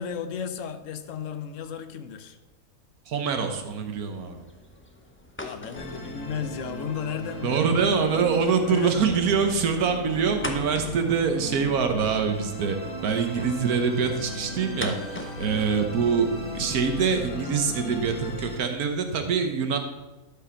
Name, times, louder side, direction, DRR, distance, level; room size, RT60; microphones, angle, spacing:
voice 1, 0.0-2.4 5.4-7.7 8.6-9.0 15.4-15.6, left 7 dB, 65° left, 10 dB, 1.0 m, -34 dB
voice 2, 3.1-4.4 7.4-19.8, right 6 dB, 80° right, 6 dB, 1.5 m, -25 dB
sound 1, 3.3-17.4, left 1 dB, 15° left, 0.4 m, -44 dB
Musical instrument, 5.8-18.6, left 1 dB, 40° left, 1.3 m, -37 dB
12.0 x 5.5 x 4.4 m, 1.1 s
omnidirectional pair, 1.6 m